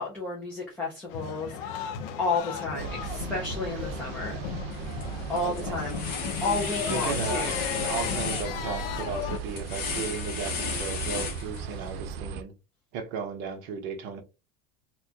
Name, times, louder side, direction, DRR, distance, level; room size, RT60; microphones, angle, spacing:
voice 1, 0.0-1.9 2.2-4.4 5.3-6.0 6.4-7.6, left 3 dB, 5° left, 0.3 m, -31 dB
sound 1, 1.1-9.4, left 8 dB, 70° left, 0.6 m, -36 dB
sound 2, 2.8-12.4, right 5 dB, 75° right, 0.6 m, -37 dB
sound 3, 4.7-5.0 5.4-11.9, left 5 dB, 30° left, 0.9 m, -34 dB
voice 2, 5.4-6.1 6.9-12.5 12.9-14.2, right 6 dB, 35° right, 0.7 m, -35 dB
4.2 x 2.2 x 2.7 m
supercardioid pair, 175°, 30 cm